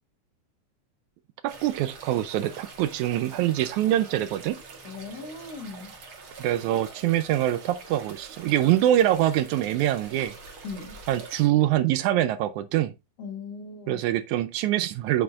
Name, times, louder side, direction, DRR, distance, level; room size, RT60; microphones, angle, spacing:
voice 1, 1.4-4.6 6.4-10.3 11.1-12.9 13.9-15.2, right 13 dB, 80° right, 1.8 m, -24 dB
sound 1, 1.5-11.5, right 4 dB, 45° right, 2.2 m, -45 dB
voice 2, 4.8-6.0 10.6-11.0 13.2-14.0, left 4 dB, 55° left, 2.2 m, -38 dB
8.5 x 5.5 x 2.4 m
omnidirectional pair, 3.8 m